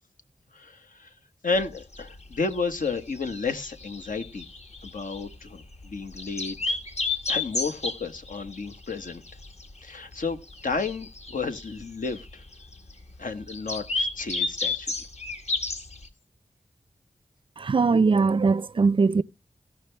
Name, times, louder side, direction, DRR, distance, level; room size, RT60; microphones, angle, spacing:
voice 1, 0.5-1.1 1.4-4.5 4.8-6.8 7.3-9.2 9.8-12.4 13.2-14.9, left 4 dB, 80° left, 1.1 m, -32 dB
sound 1, 1.5-16.1, left 3 dB, 55° left, 1.5 m, -33 dB
voice 2, 17.6-19.2, right 4 dB, 40° right, 0.4 m, -21 dB
17.0 x 5.7 x 3.3 m
cardioid pair, 50°, 14 cm